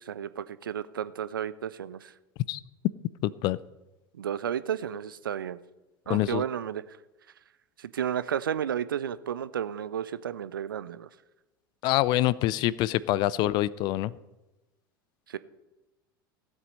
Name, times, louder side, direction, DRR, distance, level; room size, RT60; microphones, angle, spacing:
voice 1, 0.1-2.1 4.2-5.6 6.1-6.8 7.8-11.1 13.1-13.2 15.3-15.4, right 9 dB, 70° right, 17 dB, 0.5 m, -32 dB
voice 2, 3.2-3.6 6.1-6.4 11.8-14.1, left 15 dB, 40° left, 21 dB, 0.4 m, -25 dB
15.5 x 8.2 x 5.5 m, 1.0 s
figure-of-eight pair, 80°, 12 cm